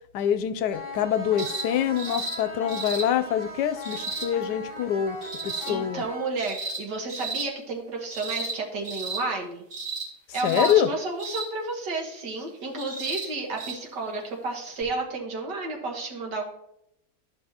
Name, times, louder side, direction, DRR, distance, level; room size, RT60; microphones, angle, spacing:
voice 1, 0.1-5.2 5.4-6.0 10.4-10.9, left 9 dB, 80° left, 11 dB, 1.2 m, -25 dB
sound 1, 0.7-6.7, left 2 dB, 30° left, 2.1 m, -39 dB
sound 2, 1.4-1.7 2.0-2.4 2.7-3.1 3.8-4.3 5.2-5.7 6.4-6.8 7.1-7.5 8.1-8.6 8.8-9.2 9.7-10.1 10.3-10.8 11.2-11.5 12.8-13.3 13.6-13.7 14.8-14.9, right 3 dB, 50° right, 2.5 m, -33 dB
voice 2, 5.7-9.6 10.3-16.5, right 3 dB, 85° right, 1 dB, 2.1 m, -31 dB
13.0 x 5.3 x 2.9 m, 0.79 s
omnidirectional pair, 1.8 m